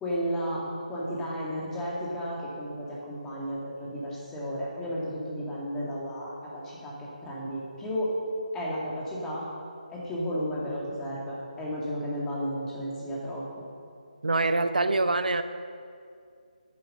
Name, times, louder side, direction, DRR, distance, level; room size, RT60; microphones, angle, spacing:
voice 1, 0.0-8.1 8.5-9.5 9.9-13.4, equal, 10° left, -6 dB, 2.2 m, -33 dB
voice 2, 14.2-15.4, right 2 dB, 80° right, 10 dB, 0.8 m, -24 dB
9.6 x 9.4 x 6.5 m, 2.3 s
figure-of-eight pair, 155°, 4 cm